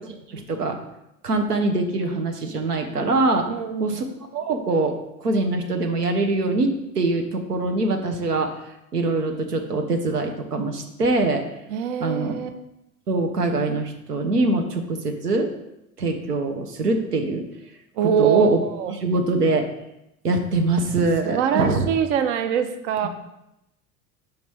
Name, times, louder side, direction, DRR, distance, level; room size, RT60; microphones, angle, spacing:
voice 1, 0.3-0.8 1.2-3.5 3.8-4.0 4.3-8.5 8.9-11.4 12.0-12.3 13.1-15.5 16.0-17.4 18.0-18.6 19.0-19.7 20.2-21.9 23.0-23.1, right 2 dB, 85° right, 5 dB, 0.8 m, -23 dB
voice 2, 3.5-4.0 11.7-12.5 18.0-19.0 21.2-23.1, right 8 dB, 50° right, 8 dB, 0.6 m, -23 dB
5.2 x 4.0 x 4.6 m, 0.87 s
figure-of-eight pair, 75°, 46 cm